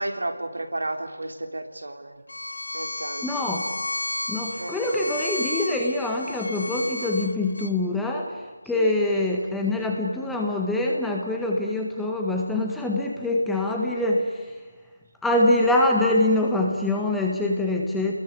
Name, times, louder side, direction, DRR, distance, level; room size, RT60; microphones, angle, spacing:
voice 1, 0.0-2.2 2.7-3.4 4.6-5.1 8.7-9.0, right 2 dB, 85° right, 6 dB, 3.5 m, -33 dB
Bowed string instrument, 2.3-7.7, left 2 dB, 75° left, 3.0 m, -32 dB
voice 2, 3.2-3.6 4.3-14.6 15.2-18.1, left 2 dB, 5° left, 0 dB, 1.7 m, -24 dB
28.5 x 21.5 x 8.1 m, 1.3 s
figure-of-eight pair, 165°, 0 cm